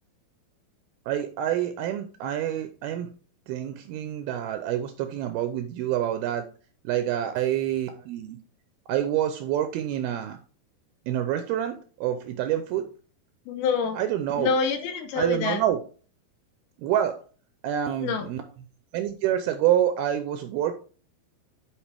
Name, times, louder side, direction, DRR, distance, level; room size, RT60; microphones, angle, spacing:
voice 1, 1.1-3.1 3.5-6.5 6.8-8.4 8.9-10.4 11.1-12.9 13.9-14.5 15.2-15.8 16.8-17.2 17.6-18.4 18.9-20.7, right 11 dB, 80° right, 8 dB, 2.3 m, -27 dB
voice 2, 13.5-14.0 14.4-15.6 18.0-18.3, left 6 dB, 75° left, 6 dB, 2.5 m, -26 dB
10.5 x 4.7 x 3.4 m, 0.39 s
omnidirectional pair, 4.9 m